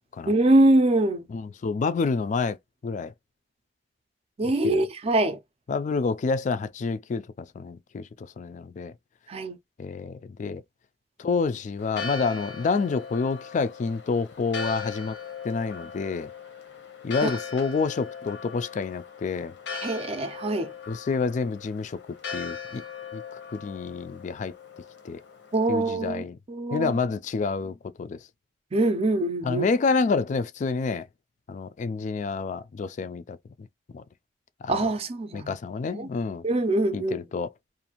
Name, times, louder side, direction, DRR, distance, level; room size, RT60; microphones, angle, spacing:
voice 1, 0.3-1.3 4.4-5.4 9.3-9.6 17.2-17.3 19.8-20.7 25.5-26.9 28.7-29.7 34.7-35.6 35.9-36.1 36.4-37.3, right 2 dB, 35° right, 0.5 m, -23 dB
voice 2, 1.3-2.6 2.8-3.1 4.4-4.8 5.7-8.0 8.4-8.9 9.8-10.6 11.2-15.2 15.4-16.3 17.0-19.5 20.9-22.0 22.3-22.8 23.1-23.2 23.5-24.5 25.0-25.2 25.7-26.4 26.7-28.2 29.4-31.1 31.5-33.7 33.9-34.0 34.6-34.8 35.3-36.4 36.9-37.5, left 4 dB, 45° left, 0.3 m, -28 dB
Church bell, 11.8-25.9, left 5 dB, 90° left, 0.8 m, -39 dB
2.5 x 2.4 x 2.9 m
head